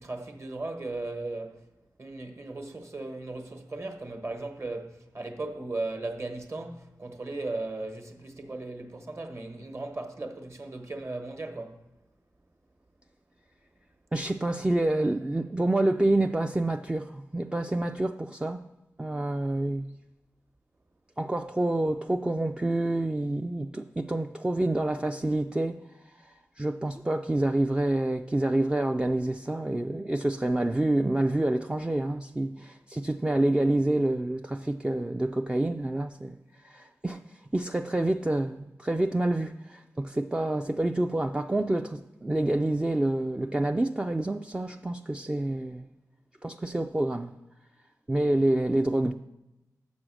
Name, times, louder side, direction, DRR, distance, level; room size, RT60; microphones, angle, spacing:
voice 1, 0.0-1.6 2.0-11.8, right 2 dB, 45° right, 1.1 m, -37 dB
voice 2, 14.1-18.6 19.0-19.9 21.2-25.8 26.2-36.3 36.6-37.2 37.5-45.9 46.4-47.3 48.1-49.1, right 1 dB, 15° right, 0.3 m, -27 dB
6.3 x 6.2 x 6.2 m
cardioid pair, 60°, 7 cm